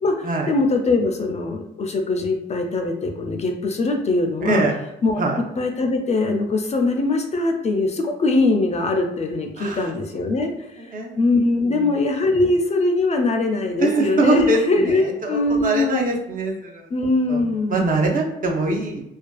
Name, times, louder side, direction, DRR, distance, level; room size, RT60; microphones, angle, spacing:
voice 1, 0.0-4.6 5.0-5.2 5.6-10.5 11.2-16.2 16.9-17.9, left 2 dB, 35° left, 3 dB, 0.4 m, -21 dB
voice 2, 4.4-4.7 5.2-5.4 9.6-9.8 10.9-11.2 11.7-11.8 13.8-16.9 17.3-17.4 17.7-19.0, right 2 dB, 45° right, 0 dB, 0.6 m, -22 dB
2.5 x 2.3 x 2.3 m, 0.85 s
cardioid pair, 90°, 20 cm